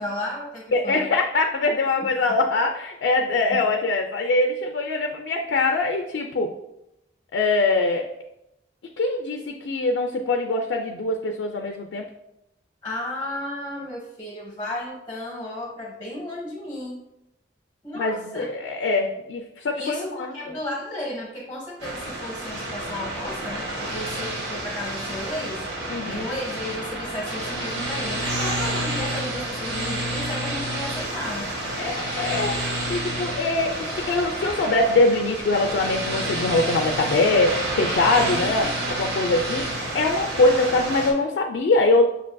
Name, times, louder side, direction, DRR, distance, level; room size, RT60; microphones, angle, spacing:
voice 1, 0.0-1.1 3.5-3.6 12.8-17.0 17.8-18.4 19.7-25.6 26.0-31.5 38.3-38.7, left 1 dB, 15° left, -2 dB, 0.7 m, -33 dB
voice 2, 0.7-6.5 7.3-8.1 8.8-12.1 17.9-20.6 25.9-26.2 31.8-42.1, left 2 dB, 80° left, 3 dB, 0.3 m, -23 dB
sound 1, 21.8-41.1, right 1 dB, 70° right, 0.8 m, -29 dB
5.7 x 2.5 x 2.2 m, 0.86 s
head